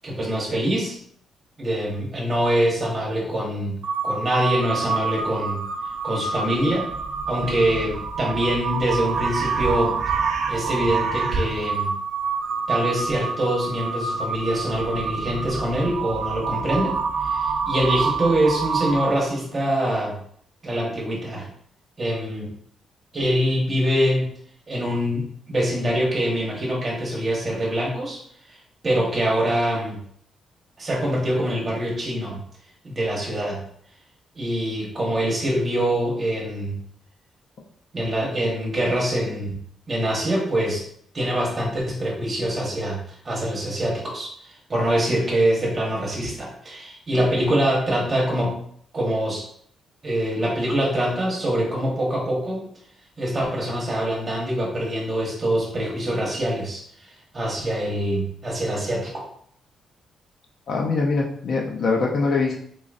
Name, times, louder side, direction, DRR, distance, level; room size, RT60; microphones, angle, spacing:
voice 1, 0.0-1.0 1.6-3.8 4.0-5.6 6.0-6.9 7.3-10.0 10.5-11.9 12.7-17.0 17.2-20.2 20.6-21.5 22.0-22.5 23.1-24.3 24.7-28.2 28.8-30.0 30.8-32.4 32.8-33.6 34.3-36.8 37.9-39.6 39.9-40.8 41.1-48.5 48.9-49.5 50.0-52.6 53.2-56.8 57.3-59.3, equal, 25° right, -3 dB, 1.3 m, -24 dB
Crow, 3.8-19.3, right 5 dB, 60° right, 0.4 m, -27 dB
voice 2, 60.7-62.5, left 4 dB, 50° left, -1 dB, 0.6 m, -23 dB
3.9 x 3.0 x 2.5 m, 0.62 s
cardioid pair, 145°, 0 cm